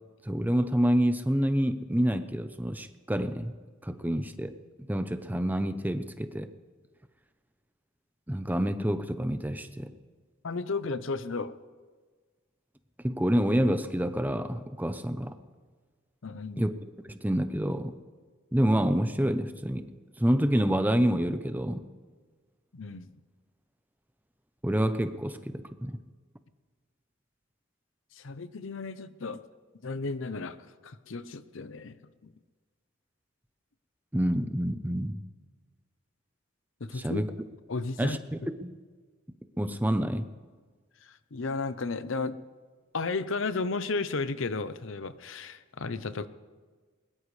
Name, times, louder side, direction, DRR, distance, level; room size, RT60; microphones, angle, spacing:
voice 1, 0.3-3.5 3.8-6.5 8.3-9.9 13.0-15.4 16.6-16.7 17.1-17.9 18.5-19.9 20.2-21.8 24.6-26.0 34.1-35.2 36.9-37.3 38.0-38.8 39.6-40.3, equal, 10° right, 10 dB, 0.7 m, -27 dB
voice 2, 10.4-11.5 16.2-16.6 22.7-23.1 28.2-29.4 29.8-30.6 30.8-32.3 36.8-37.2 37.7-38.5 41.0-42.4 42.9-46.3, left 3 dB, 70° left, 13 dB, 0.7 m, -34 dB
21.5 x 20.5 x 3.3 m, 1.4 s
head